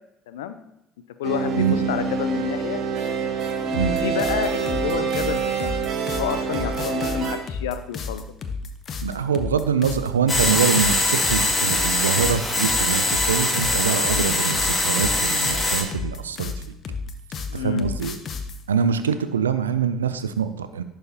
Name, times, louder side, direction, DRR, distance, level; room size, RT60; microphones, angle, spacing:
voice 1, 0.3-0.6 1.2-2.8 3.8-5.7 6.1-8.2 17.5-17.9, left 9 dB, 80° left, 10 dB, 0.4 m, -29 dB
sound 1, 1.2-7.4, right 5 dB, 60° right, 1.0 m, -26 dB
sound 2, 3.7-18.6, left 4 dB, 45° left, 0.7 m, -32 dB
voice 2, 9.0-16.5 17.5-18.2 18.7-20.8, right 7 dB, 90° right, 11 dB, 0.3 m, -24 dB
sound 3, 10.3-15.8, left 2 dB, 15° left, 2.0 m, -22 dB
11.0 x 4.7 x 2.8 m, 0.84 s
hypercardioid pair, 60°, 0 cm